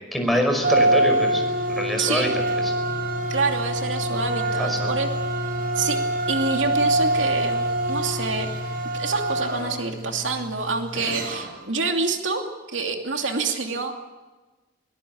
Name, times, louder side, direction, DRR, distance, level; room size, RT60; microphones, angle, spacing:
voice 1, 0.1-2.7 4.6-4.9 11.0-11.1, equal, ahead, 2 dB, 5.4 m, -25 dB
sound 1, 0.6-11.6, right 1 dB, 50° right, 5.1 m, -25 dB
voice 2, 2.0-2.4 3.3-5.1 5.7-6.0 6.3-8.5 8.9-13.9, right 3 dB, 80° right, 3 dB, 2.7 m, -27 dB
22.0 x 21.0 x 8.7 m, 1.2 s
head